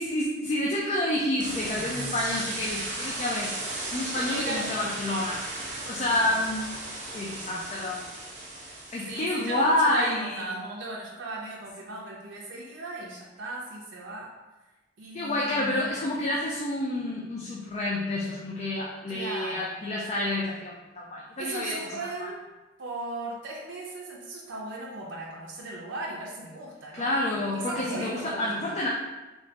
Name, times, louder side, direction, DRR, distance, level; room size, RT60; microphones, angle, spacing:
voice 1, 0.0-3.6 3.9-5.4 5.9-6.8 7.1-8.0 8.9-10.4 15.1-21.8 22.2-22.3 27.0-28.9, left 1 dB, 35° left, -4 dB, 0.4 m, -28 dB
sound 1, 1.4-9.6, right 2 dB, 40° right, 0.7 m, -36 dB
voice 2, 4.1-4.7 6.0-6.4 8.8-14.3 15.0-15.9 19.1-19.7 21.4-22.4 22.8-28.8, right 2 dB, 75° right, -4 dB, 0.5 m, -37 dB
3.1 x 3.1 x 2.8 m, 1.1 s
head